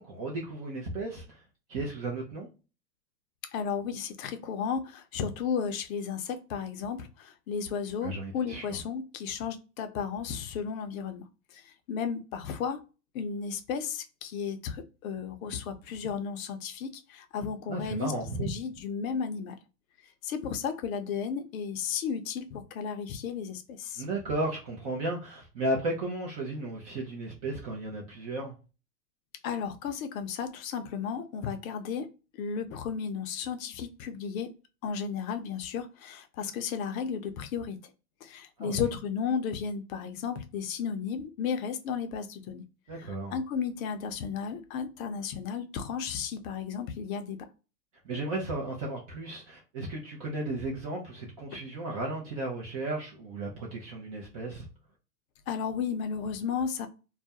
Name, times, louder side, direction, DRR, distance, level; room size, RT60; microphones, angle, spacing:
voice 1, 0.0-1.4 1.7-2.5 8.0-8.8 17.7-18.5 24.0-28.5 38.6-38.9 42.9-43.4 48.0-54.7, right 2 dB, 25° right, 0.3 m, -34 dB
voice 2, 3.5-11.2 11.5-12.8 13.1-18.1 18.4-19.6 20.2-24.0 29.4-34.5 34.8-37.8 38.2-42.6 42.9-47.5 55.5-56.9, left 6 dB, 55° left, 0.6 m, -34 dB
2.3 x 2.1 x 2.7 m
hypercardioid pair, 115°, 50 cm